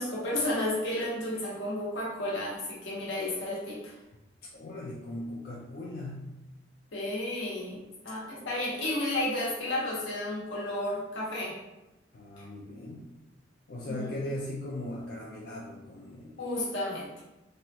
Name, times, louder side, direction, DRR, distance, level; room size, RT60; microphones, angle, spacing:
voice 1, 0.0-4.0 6.9-11.6 12.4-12.5 13.8-14.1 16.4-17.2, left 1 dB, 75° left, -5 dB, 0.9 m, -32 dB
voice 2, 4.5-6.4 12.1-13.1 13.7-16.4, left 1 dB, 50° left, -4 dB, 0.4 m, -39 dB
3.1 x 2.3 x 2.7 m, 1.0 s
head